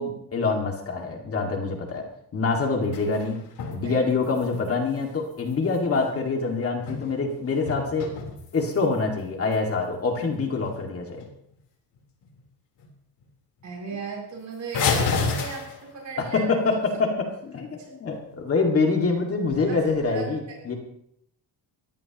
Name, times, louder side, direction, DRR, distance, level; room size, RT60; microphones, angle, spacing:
voice 1, 0.0-2.0 2.3-3.4 3.7-8.1 8.5-11.2 16.2-20.8, left 4 dB, 35° left, 1 dB, 2.1 m, -25 dB
sound 1, 2.5-3.8 4.1-6.1 6.6-7.3 7.6-9.0 9.5-9.6 10.1-10.2 10.7-10.8 11.1-11.6 12.0-12.4 12.8-12.9 13.2-13.3 13.6-13.7 14.7-16.1 19.4-20.0, left 5 dB, 70° left, 3.8 m, -31 dB
voice 2, 13.6-16.5 17.8-17.9 19.7-20.8, right 4 dB, 45° right, -2 dB, 7.7 m, -37 dB
22.0 x 15.5 x 3.0 m, 0.73 s
cardioid pair, 175°, 41 cm